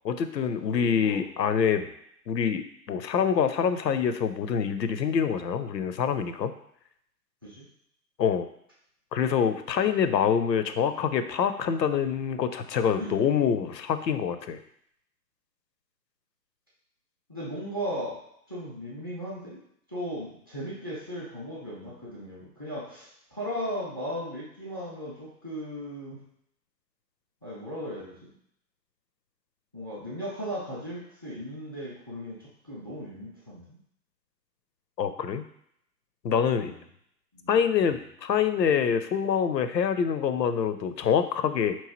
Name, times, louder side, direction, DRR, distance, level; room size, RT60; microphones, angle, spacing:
voice 1, 0.0-1.8 2.3-6.5 8.2-8.5 9.1-14.6 35.0-35.5 36.2-36.7 37.5-41.8, left 7 dB, 80° left, 10 dB, 0.6 m, -26 dB
voice 2, 0.7-1.2 1.7-1.9 7.4-7.6 13.0-13.1 17.3-18.2 18.5-19.6 19.9-26.2 27.4-28.2 29.7-32.4 32.6-33.8 36.5-36.8 37.4-37.5 37.8-37.9, equal, 15° right, -6 dB, 0.4 m, -37 dB
4.5 x 3.0 x 2.9 m, 0.70 s
figure-of-eight pair, 135°, 49 cm